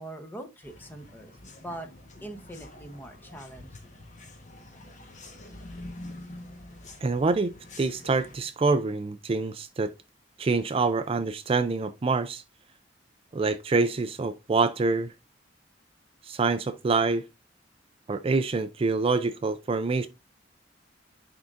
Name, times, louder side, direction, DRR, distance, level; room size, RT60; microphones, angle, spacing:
voice 1, 0.0-1.9 2.2-4.0, right 1 dB, 10° left, 0.9 m, -42 dB
sound 1, 0.6-8.4, left 1 dB, 40° left, 1.3 m, -46 dB
voice 2, 7.0-9.9 10.4-12.4 13.3-15.1 16.3-17.2 18.1-20.1, right 3 dB, 30° right, 0.4 m, -26 dB
10.5 x 3.7 x 2.6 m
head